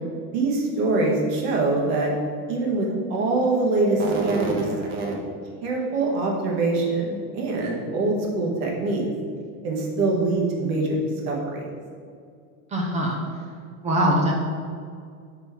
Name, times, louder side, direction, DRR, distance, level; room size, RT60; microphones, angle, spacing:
voice 1, 0.3-2.1 2.5-5.1 5.6-9.0 9.6-11.0 11.2-11.6, right 3 dB, 50° right, -1 dB, 1.6 m, -24 dB
voice 2, 12.7-13.2 13.8-14.3, equal, 15° right, 0 dB, 0.5 m, -22 dB
5.2 x 4.5 x 5.7 m, 2.2 s
supercardioid pair, 155°, 44 cm